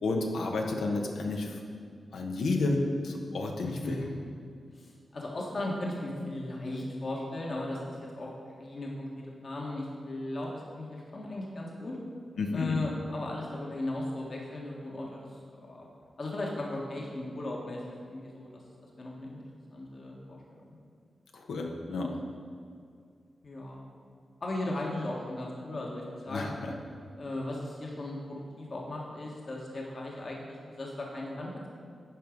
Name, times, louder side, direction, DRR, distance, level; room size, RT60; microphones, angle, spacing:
voice 1, 0.0-1.6 2.1-4.0 12.4-12.8 21.3-22.2 26.3-26.7, left 2 dB, 90° left, 1 dB, 1.0 m, -31 dB
voice 2, 3.6-4.1 4.7-8.3 8.6-12.0 12.5-15.3 15.7-15.8 16.2-18.6 19.0-19.4 19.7-20.4 23.4-23.8 24.4-26.5 27.2-31.7, left 2 dB, 60° left, -3 dB, 1.5 m, -36 dB
11.0 x 4.7 x 5.3 m, 2.2 s
cardioid pair, 60°, 0 cm